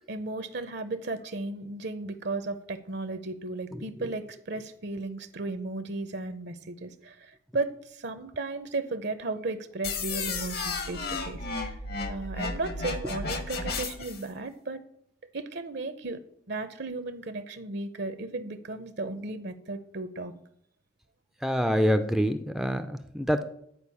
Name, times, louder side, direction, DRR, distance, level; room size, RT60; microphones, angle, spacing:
voice 1, 0.1-11.8 12.1-14.8 15.3-16.2 16.5-20.4, right 3 dB, 55° right, 11 dB, 0.7 m, -35 dB
sound 1, 9.8-14.2, left 4 dB, 50° left, 1.2 m, -33 dB
voice 2, 21.4-23.4, equal, ahead, 8 dB, 0.5 m, -26 dB
11.0 x 5.0 x 8.3 m, 0.70 s
head